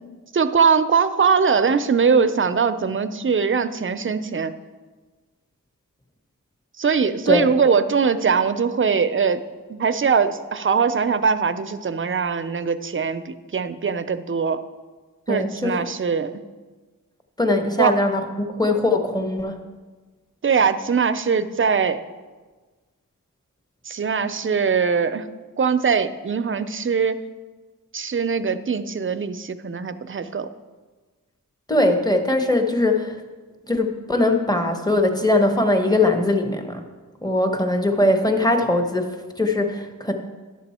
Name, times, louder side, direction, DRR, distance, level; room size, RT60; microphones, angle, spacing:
voice 1, 0.3-4.5 6.8-9.4 9.7-14.6 15.3-16.4 17.8-17.9 20.4-22.0 23.9-25.3 25.6-27.2 27.9-30.5, right 6 dB, 40° right, 11 dB, 0.5 m, -21 dB
voice 2, 15.3-15.8 17.4-19.6 31.7-33.1 33.7-36.8 37.2-40.1, left 2 dB, 10° left, 5 dB, 1.0 m, -21 dB
10.5 x 6.9 x 4.2 m, 1.3 s
wide cardioid pair, 75°, 34 cm